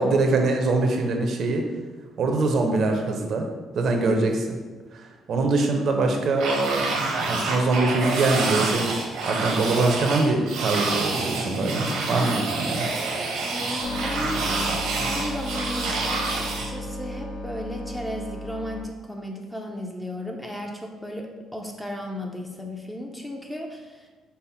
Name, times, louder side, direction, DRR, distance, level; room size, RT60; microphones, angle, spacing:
voice 1, 0.0-1.6 2.2-3.5 3.7-4.6 4.9-6.8 7.3-9.0 9.3-12.9, right 3 dB, 55° right, 3 dB, 0.6 m, -23 dB
sound 1, 6.4-16.7, right 3 dB, 85° right, 0.9 m, -28 dB
voice 2, 13.4-24.1, left 1 dB, 5° left, 1 dB, 0.5 m, -35 dB
sound 2, 13.8-18.8, left 1 dB, 70° left, 0.8 m, -34 dB
5.5 x 2.1 x 4.3 m, 1.3 s
cardioid pair, 130°, 0 cm